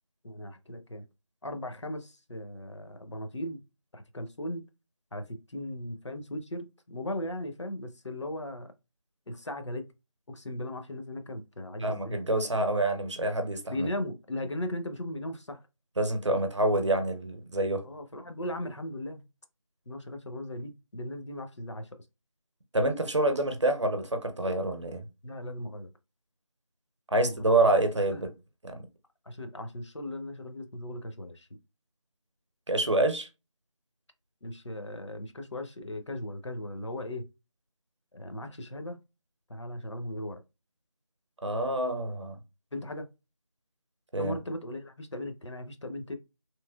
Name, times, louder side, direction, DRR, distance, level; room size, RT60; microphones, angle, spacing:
voice 1, 0.2-1.0 1.4-3.6 3.9-4.6 5.1-8.7 9.3-9.9 10.3-12.2 13.7-15.6 17.8-19.2 19.9-21.9 25.2-25.9 27.1-27.5 28.1-28.2 29.3-31.5 34.4-37.3 38.1-39.0 39.5-40.4 42.7-43.1 44.2-46.2, left 1 dB, 55° left, 0.6 m, -37 dB
voice 2, 11.8-13.9 16.0-17.8 22.7-25.0 27.1-28.3 28.6-28.8 32.7-33.3 41.4-42.4 44.1-44.4, right 2 dB, 55° right, 0.7 m, -27 dB
3.1 x 2.7 x 2.2 m
figure-of-eight pair, 175°, 18 cm